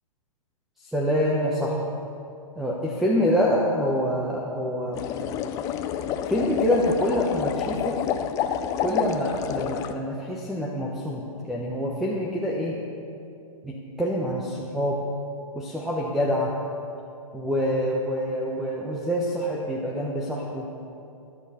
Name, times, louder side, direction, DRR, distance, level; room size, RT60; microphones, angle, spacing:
voice 1, 0.8-1.8 2.6-5.0 6.3-8.0 8.8-12.8 13.6-15.0 15.5-16.5 17.3-20.7, equal, ahead, -3 dB, 0.9 m, -26 dB
sound 1, 4.9-9.9, left 9 dB, 20° left, 0.4 m, -28 dB
15.0 x 11.0 x 4.2 m, 2.6 s
hypercardioid pair, 135°, 19 cm